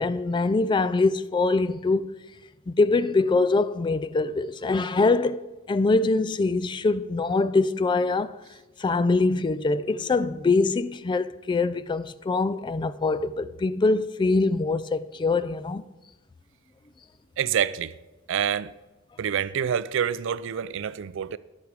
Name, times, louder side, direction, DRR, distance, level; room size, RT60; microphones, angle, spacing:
voice 1, 0.0-2.2 2.7-8.4 8.8-15.8, left 3 dB, 20° left, 0.3 m, -24 dB
voice 2, 17.4-17.9 18.3-18.7 19.2-21.4, right 8 dB, 65° right, 0.4 m, -27 dB
11.5 x 8.3 x 4.7 m
head